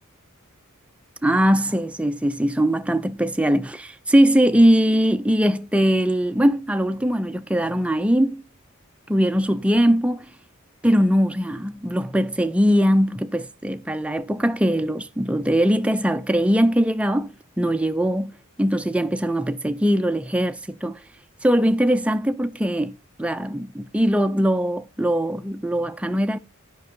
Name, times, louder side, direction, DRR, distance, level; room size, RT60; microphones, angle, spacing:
voice 1, 1.2-8.4 9.1-10.3 10.8-21.0 21.4-22.9 23.2-26.4, equal, 5° right, 0.4 m, -21 dB
9.2 x 5.3 x 5.4 m
head